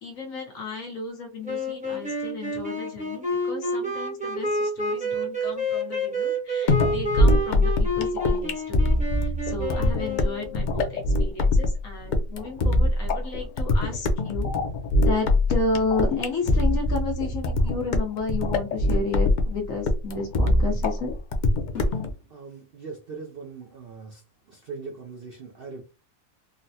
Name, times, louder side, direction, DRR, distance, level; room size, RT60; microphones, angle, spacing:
voice 1, 0.0-14.5 15.0-21.1, left 3 dB, 65° left, 1 dB, 1.3 m, -32 dB
sound 1, 1.4-10.6, equal, 5° right, 0.8 m, -29 dB
sound 2, 6.7-22.1, left 1 dB, 85° left, 0.4 m, -23 dB
sound 3, 18.9-20.9 21.7-22.5, left 6 dB, 50° left, 1.1 m, -47 dB
voice 2, 22.3-24.2 24.5-25.8, right 4 dB, 60° right, 1 dB, 0.6 m, -40 dB
3.9 x 2.1 x 2.7 m, 0.29 s
omnidirectional pair, 1.5 m